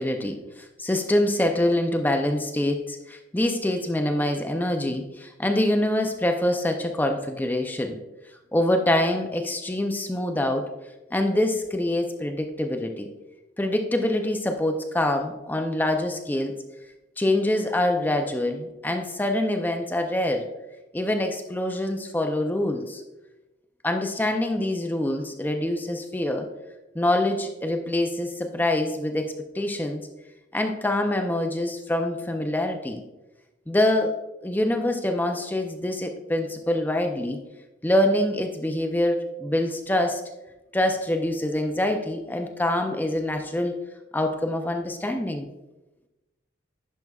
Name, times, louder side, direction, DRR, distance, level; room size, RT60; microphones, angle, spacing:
voice 1, 0.0-8.0 8.5-10.7 11.1-13.1 13.6-16.6 17.2-20.5 20.9-23.0 23.8-26.5 26.9-30.0 30.5-33.0 33.7-34.1 34.4-37.4 37.8-40.2 40.7-43.8 44.1-45.5, left 1 dB, 10° left, 5 dB, 0.4 m, -25 dB
10.5 x 5.4 x 2.3 m, 1.0 s
head